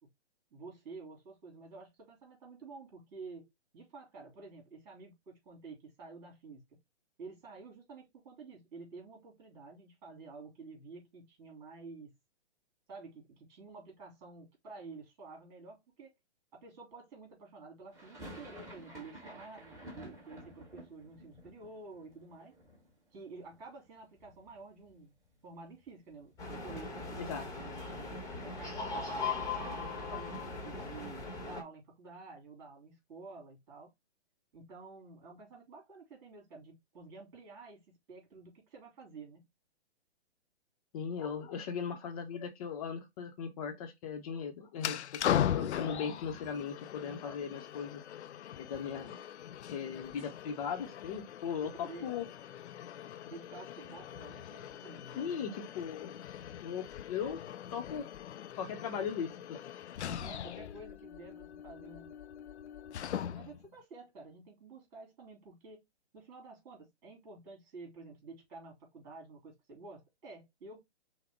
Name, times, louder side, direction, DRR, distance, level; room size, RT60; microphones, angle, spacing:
voice 1, 0.5-3.5 3.7-6.6 7.2-12.1 12.9-16.1 16.5-22.6 23.1-25.1 25.4-27.7 28.4-33.9 34.5-39.4 51.6-52.2 53.2-55.6 60.0-62.1 63.2-65.8 66.1-70.8, right 3 dB, 40° right, 3.1 m, -50 dB
sound 1, 17.9-23.9 24.1-25.0 25.2-25.3 25.6-27.8, right 1 dB, 10° right, 1.5 m, -52 dB
sound 2, 26.4-31.6, left 4 dB, 10° left, 1.1 m, -39 dB
voice 2, 40.9-45.0 45.5-48.0 48.6-49.2 49.7-52.3 55.2-56.2 56.6-57.4 57.7-58.1 58.6-59.6, left 7 dB, 35° left, 0.7 m, -38 dB
sound 3, 44.8-63.7, left 10 dB, 75° left, 0.5 m, -40 dB
5.7 x 2.2 x 3.7 m
hypercardioid pair, 135°, 34 cm